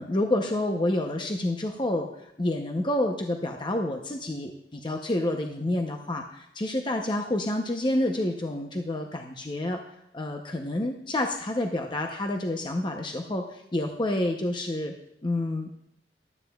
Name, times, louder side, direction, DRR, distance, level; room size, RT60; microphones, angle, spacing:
voice 1, 0.0-2.1 2.4-9.8 10.1-14.9 15.2-15.7, left 1 dB, 25° left, 3 dB, 0.7 m, -28 dB
15.5 x 12.0 x 2.3 m, 0.77 s
head